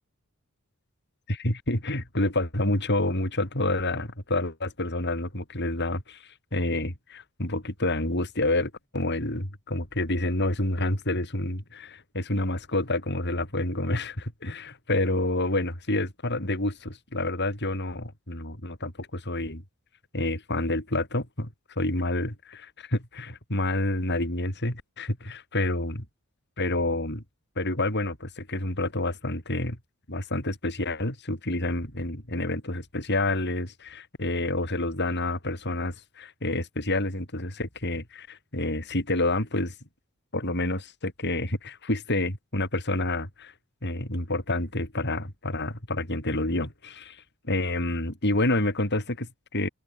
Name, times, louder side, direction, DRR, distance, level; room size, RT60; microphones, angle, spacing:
voice 1, 1.3-19.6 20.1-26.0 26.6-27.2 27.6-29.8 30.1-39.7 40.3-43.5 43.8-49.7, left 2 dB, 50° left, 7.7 m, -28 dB
head